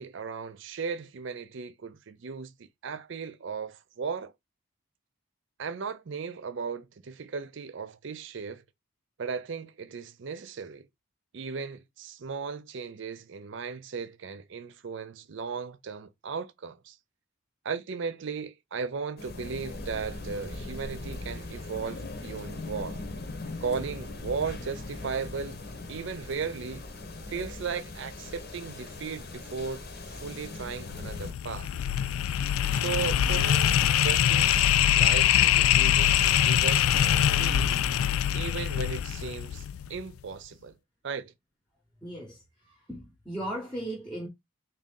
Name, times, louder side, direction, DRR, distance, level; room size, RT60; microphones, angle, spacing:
voice 1, 0.0-2.5 2.8-4.3 5.6-8.6 9.2-10.9 11.3-17.0 17.6-23.0 23.6-25.6 25.9-26.9 27.3-31.7 32.7-34.6 35.0-37.8 38.3-40.7 41.0-41.3, right 5 dB, 60° right, 0.4 m, -36 dB
sound 1, 19.2-31.3, left 2 dB, 45° left, 0.8 m, -40 dB
sound 2, 30.9-40.0, left 10 dB, 80° left, 0.3 m, -24 dB
voice 2, 42.0-44.3, right 1 dB, 5° left, 0.9 m, -37 dB
3.6 x 2.7 x 3.6 m
head